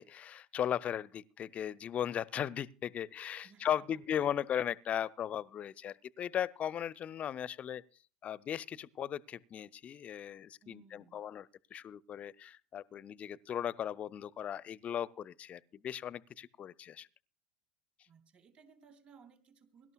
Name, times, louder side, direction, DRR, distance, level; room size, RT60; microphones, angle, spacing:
voice 1, 0.0-7.8 8.2-17.1, left 9 dB, 35° left, 0.5 m, -37 dB
voice 2, 3.4-4.0 10.6-11.2 18.1-19.9, right 6 dB, 40° right, 2.7 m, -61 dB
23.0 x 12.0 x 2.3 m
figure-of-eight pair, 75°, 4 cm